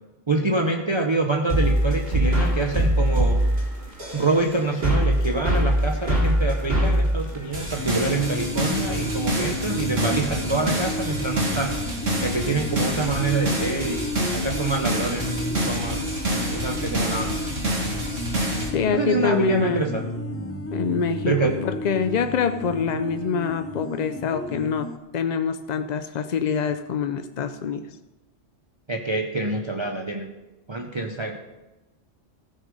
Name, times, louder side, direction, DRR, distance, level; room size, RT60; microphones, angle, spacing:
voice 1, 0.3-3.5 4.1-11.8 12.2-15.3 15.7-17.4 18.9-20.1 21.3-21.7 28.9-30.3 30.7-31.4, right 3 dB, 25° right, 3 dB, 0.7 m, -26 dB
sound 1, 1.5-8.1, equal, 50° right, 3.3 m, -22 dB
sound 2, 7.5-18.7, right 1 dB, 80° right, 2.5 m, -28 dB
sound 3, 7.8-25.0, left 2 dB, 15° left, 0.6 m, -32 dB
voice 2, 18.7-20.0 20.7-21.4 21.6-24.9 25.1-27.9, left 6 dB, 60° left, 9 dB, 0.4 m, -25 dB
15.0 x 6.5 x 5.3 m, 1.0 s
omnidirectional pair, 1.3 m